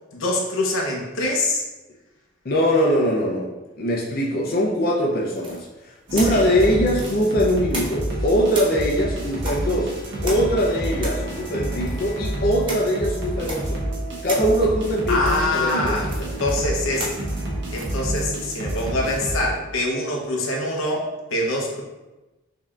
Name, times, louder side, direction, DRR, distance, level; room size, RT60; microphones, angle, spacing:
voice 1, 0.1-1.6 6.1-6.5 15.1-17.1 17.7-21.8, left 2 dB, 90° left, -1 dB, 0.8 m, -25 dB
voice 2, 2.4-3.5 3.8-9.9 10.2-13.8 14.2-16.0, equal, 50° left, -2 dB, 0.5 m, -22 dB
sound 1, 5.4-8.2 8.5-19.5, right 2 dB, 25° right, 0.7 m, -37 dB
sound 2, 6.1-19.7, right 1 dB, 55° right, 0.9 m, -29 dB
5.3 x 2.8 x 2.4 m, 1.1 s
head